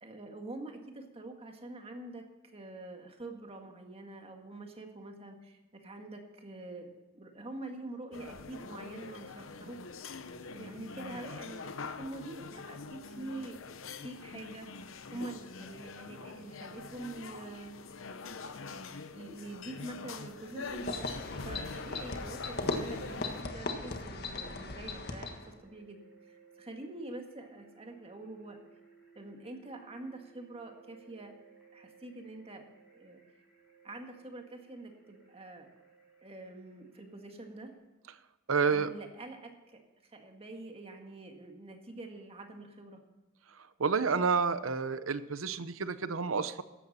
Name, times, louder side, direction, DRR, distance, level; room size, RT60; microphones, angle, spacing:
voice 1, 0.0-2.2 2.5-9.8 10.4-11.7 12.0-13.6 14.0-17.8 19.1-21.0 21.4-28.6 29.2-31.3 31.7-33.2 33.8-35.7 36.2-37.7 38.7-39.8 40.1-43.0, right 2 dB, 30° right, 4 dB, 1.8 m, -45 dB
sound 1, 8.1-23.4, left 4 dB, 70° left, 0.9 m, -44 dB
sound 2, 20.7-25.5, left 2 dB, 55° left, 1.5 m, -38 dB
sound 3, 24.7-37.7, right 5 dB, 5° right, 5.1 m, -61 dB
voice 2, 38.5-38.9 43.6-46.6, right 5 dB, 75° right, 13 dB, 0.8 m, -30 dB
15.0 x 12.0 x 4.3 m, 1.2 s
head